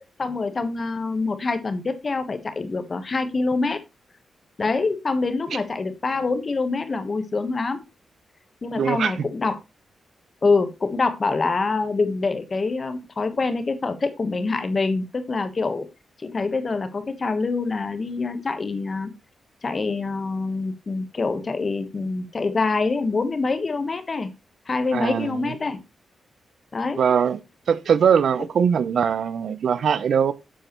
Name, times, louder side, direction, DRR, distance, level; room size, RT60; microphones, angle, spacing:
voice 1, 0.2-3.8 4.6-7.8 8.6-9.6 10.4-15.8 16.2-19.1 19.6-24.3 24.7-25.8 26.7-27.0, left 3 dB, 35° left, 1.2 m, -25 dB
voice 2, 8.8-9.3 24.9-25.5 27.0-27.4 27.7-30.3, right 7 dB, 70° right, 0.8 m, -21 dB
10.5 x 7.7 x 3.1 m
wide cardioid pair, 115°, 0 cm